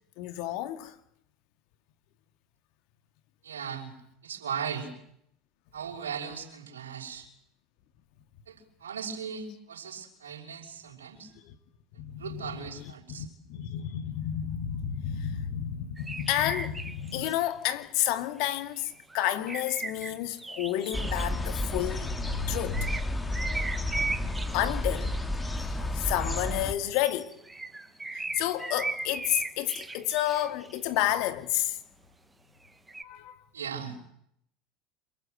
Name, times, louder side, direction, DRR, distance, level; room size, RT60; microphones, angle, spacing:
voice 1, 0.2-0.9 11.4-11.6 12.0-25.2 25.6-27.3 28.1-31.8 33.0-33.4, left 12 dB, 65° left, 2.2 m, -31 dB
voice 2, 3.4-3.9 4.2-4.9 5.7-7.3 8.5-11.3 12.2-13.3 33.5-34.0, right 7 dB, 90° right, 5.6 m, -38 dB
sound 1, 16.0-17.4 18.5-22.3 22.7-25.6 26.5-31.0 32.6-33.0, right 3 dB, 15° right, 1.6 m, -38 dB
sound 2, 20.9-26.7, left 1 dB, 15° left, 2.4 m, -31 dB
27.5 x 19.0 x 8.2 m
hypercardioid pair, 80°, 0 cm